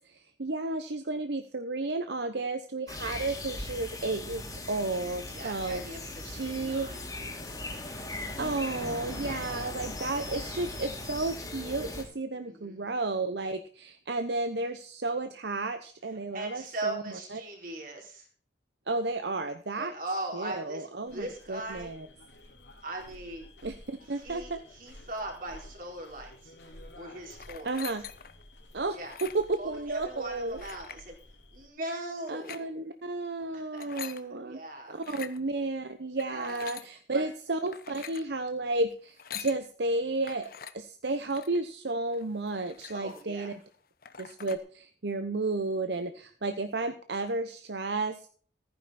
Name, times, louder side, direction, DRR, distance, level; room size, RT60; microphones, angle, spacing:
voice 1, 0.0-6.0 6.3-6.9 8.4-17.4 18.9-19.9 20.3-22.1 23.6-24.6 24.9-25.0 27.6-28.0 28.7-30.6 32.3-34.6 34.9-43.5 44.2-48.3, right 2 dB, 70° right, 8 dB, 1.0 m, -33 dB
sound 1, 2.9-12.0, left 2 dB, 20° left, 3.0 m, -39 dB
voice 2, 5.3-7.6 12.4-12.8 16.3-18.3 19.8-21.9 22.8-23.5 24.1-26.5 26.9-27.7 28.9-29.2 29.6-31.2 31.5-32.7 33.5-34.1 34.4-34.9 36.3-36.7 37.1-37.3 42.9-43.5, right 2 dB, 50° right, 1 dB, 4.4 m, -39 dB
sound 2, 21.1-31.7, left 1 dB, 80° left, 3.9 m, -52 dB
sound 3, 27.3-28.4 29.0-29.6 30.6-31.0 32.2-32.6 33.6-34.2 35.0-35.4 36.2-36.9 37.6-38.3 39.0-39.6 40.2-40.7 41.2-41.6 42.1-42.2 42.5-43.3 43.7-43.8 44.0-44.6, left 9 dB, 55° left, 0.9 m, -44 dB
14.5 x 10.0 x 4.3 m, 0.43 s
head